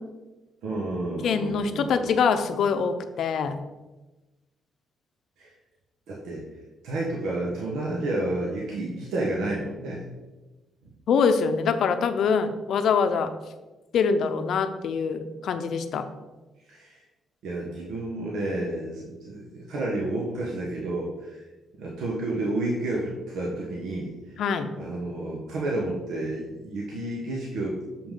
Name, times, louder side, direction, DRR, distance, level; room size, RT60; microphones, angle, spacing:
voice 1, 0.6-2.1 5.4-5.5 6.1-6.5 6.8-10.1 16.7-17.0 17.4-21.4 21.7-24.4 24.8-28.1, right 2 dB, 85° right, -3 dB, 1.2 m, -31 dB
voice 2, 1.2-3.6 11.1-13.3 13.9-16.0 24.4-24.7, left 6 dB, 70° left, 9 dB, 0.6 m, -24 dB
6.8 x 5.4 x 3.8 m, 1.1 s
cardioid pair, 90°, 0 cm